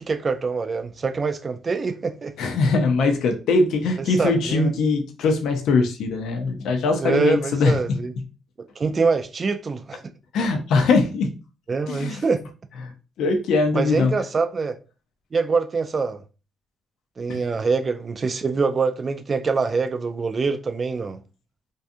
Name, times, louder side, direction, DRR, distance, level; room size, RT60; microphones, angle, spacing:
voice 1, 0.0-2.3 4.2-4.7 7.0-8.1 8.6-10.0 11.7-12.4 13.7-14.8 15.3-16.2 17.2-21.2, right 4 dB, 35° right, 0.3 m, -24 dB
voice 2, 2.4-7.8 10.3-11.3 11.9-12.2 12.8-12.9 13.2-14.1 17.3-17.4, left 3 dB, 80° left, 0.5 m, -21 dB
2.6 x 2.3 x 2.5 m
cardioid pair, 90°, 0 cm